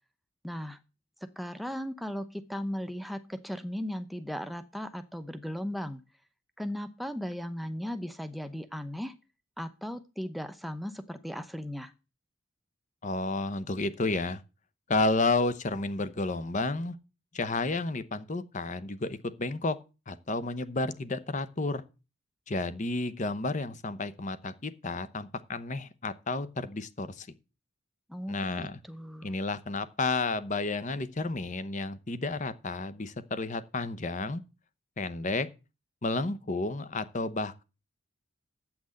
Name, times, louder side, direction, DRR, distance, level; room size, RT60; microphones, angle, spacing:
voice 1, 0.4-0.8 1.4-6.0 6.6-9.1 9.6-11.9 28.1-29.3, equal, ahead, 0.8 m, -37 dB
voice 2, 13.0-14.4 14.9-17.0 17.3-19.8 20.1-21.8 22.5-27.3 28.3-28.8 29.2-34.4 35.0-35.5 36.0-37.6, left 3 dB, 35° left, 0.8 m, -31 dB
8.5 x 6.0 x 7.7 m
head